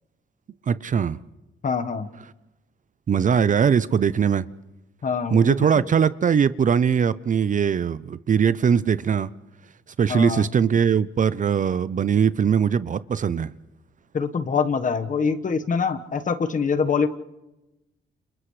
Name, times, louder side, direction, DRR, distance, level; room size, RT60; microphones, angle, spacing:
voice 1, 0.7-1.2 3.1-4.5 5.3-9.3 10.0-13.5, right 7 dB, 40° right, 0.6 m, -21 dB
voice 2, 1.6-2.1 5.0-5.9 10.1-10.5 14.1-17.1, left 5 dB, 40° left, 1.3 m, -24 dB
29.5 x 29.5 x 3.3 m
cardioid pair, 90°, 20 cm